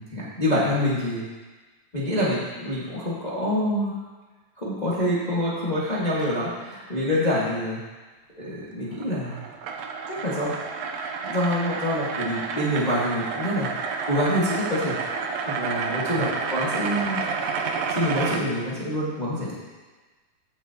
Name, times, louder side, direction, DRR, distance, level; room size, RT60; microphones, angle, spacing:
voice 1, 0.1-1.3 1.9-4.0 4.6-7.8 8.4-9.5 10.1-10.6 11.2-13.7 14.1-17.2 17.9-19.5, equal, 85° left, -7 dB, 0.3 m, -26 dB
sound 1, 8.9-18.4, right 5 dB, 85° right, 1.5 m, -30 dB
15.5 x 7.2 x 2.9 m, 1.3 s
omnidirectional pair, 4.0 m